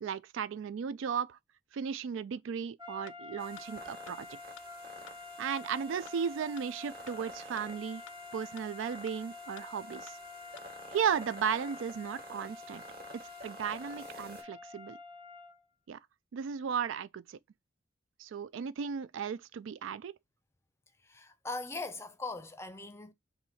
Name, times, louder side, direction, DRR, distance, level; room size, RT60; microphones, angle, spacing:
voice 1, 0.0-1.4 1.7-4.4 5.4-8.0 8.3-10.2 10.9-12.8 13.1-15.0 15.9-16.0 16.3-17.4 18.2-20.2, right 7 dB, 80° right, 0.3 m, -35 dB
sound 1, 2.8-15.6, left 4 dB, 20° right, 0.9 m, -48 dB
sound 2, 3.1-3.2 3.6-3.7 4.1-4.2 4.6-4.7 5.1-5.2 5.6-5.7 6.1-6.2 6.6-6.7 7.1-7.2 7.6-7.7 8.1-8.2 8.6-8.7 9.1-9.2 9.6-9.7 10.1-10.2 10.6-10.7, left 10 dB, 85° left, 0.4 m, -52 dB
sound 3, 3.4-14.4, right 1 dB, 45° right, 1.4 m, -51 dB
voice 2, 21.0-23.1, left 3 dB, 15° left, 0.5 m, -40 dB
4.3 x 2.7 x 4.1 m
head